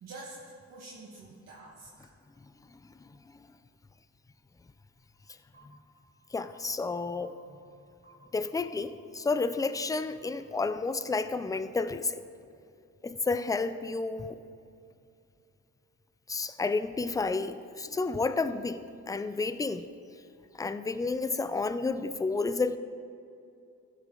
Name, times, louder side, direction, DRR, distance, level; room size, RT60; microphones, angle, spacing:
voice 1, 0.0-2.1, right 2 dB, 60° right, -5 dB, 1.7 m, -47 dB
sound 1, 5.5-5.6 6.4-6.5 7.2-7.3 8.0-8.1 8.8-10.9, right 5 dB, 25° right, 2.4 m, -63 dB
voice 2, 6.3-7.4 8.3-12.2 13.0-14.4 16.3-18.8 19.1-19.9 20.6-22.8, left 3 dB, 10° left, 12 dB, 0.4 m, -31 dB
15.0 x 6.5 x 3.8 m, 2.5 s
cardioid pair, 90°, 30 cm